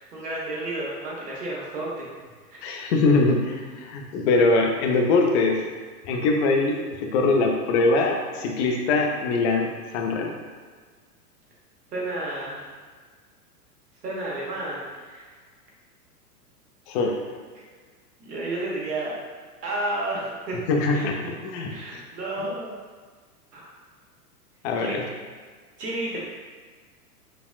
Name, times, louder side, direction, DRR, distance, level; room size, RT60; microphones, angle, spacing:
voice 1, 0.0-2.1 2.5-2.6 11.9-12.7 14.0-15.2 18.2-19.1 19.6-20.6 20.9-21.3 21.7-22.8 23.5-23.7 24.8-25.0 25.8-26.2, right 2 dB, 85° right, -5 dB, 1.2 m, -31 dB
voice 2, 2.6-5.7 6.1-6.8 7.0-10.3 16.9-17.2 20.7-21.2 21.4-21.7 22.4-22.5 24.6-25.0, left 3 dB, 45° left, 1 dB, 0.5 m, -22 dB
4.0 x 2.1 x 2.4 m, 1.5 s
hypercardioid pair, 110°, 46 cm